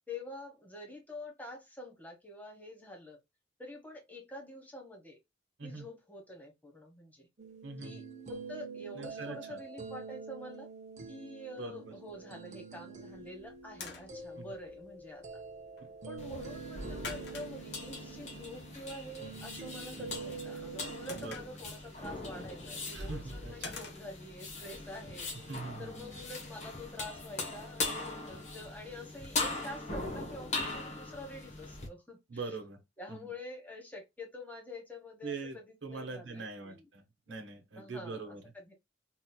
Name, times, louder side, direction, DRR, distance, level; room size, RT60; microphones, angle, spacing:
voice 1, 0.1-3.2 3.6-5.2 5.6-7.3 7.8-10.7 11.1-15.4 16.1-25.5 25.8-32.5 33.0-36.9 37.8-38.7, left 1 dB, 10° left, 1.2 m, -47 dB
sound 1, 7.4-21.3, right 5 dB, 40° right, 0.7 m, -46 dB
voice 2, 7.6-8.0 9.0-9.6 11.6-11.9 14.4-14.5 21.1-21.4 22.9-23.8 25.5-26.2 32.3-32.8 33.1-33.3 35.2-38.4, right 3 dB, 70° right, 1.0 m, -43 dB
sound 2, 13.0-26.1, left 4 dB, 65° left, 1.0 m, -52 dB
sound 3, 16.2-31.9, left 3 dB, 40° left, 1.0 m, -40 dB
4.1 x 2.9 x 2.2 m
head